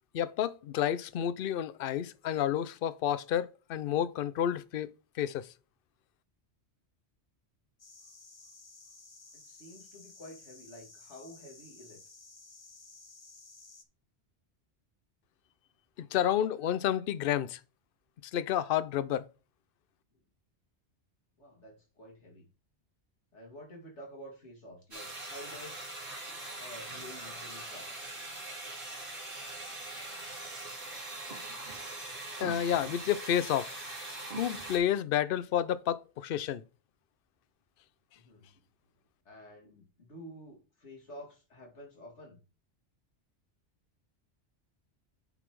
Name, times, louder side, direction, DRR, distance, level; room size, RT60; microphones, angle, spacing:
voice 1, 0.1-4.9 5.2-5.5 16.1-17.6 18.3-19.2 32.4-33.7 34.4-36.6, left 10 dB, 60° left, 0.7 m, -30 dB
sound 1, 7.8-13.8, left 3 dB, 25° left, 0.8 m, -54 dB
voice 2, 9.3-12.0 21.4-22.5 23.3-25.9 26.6-28.2 38.2-38.5 39.3-42.4, equal, 80° left, 2.6 m, -50 dB
sound 2, 24.9-34.8, right 2 dB, 50° right, 2.1 m, -42 dB
8.9 x 4.1 x 4.6 m
omnidirectional pair, 1.2 m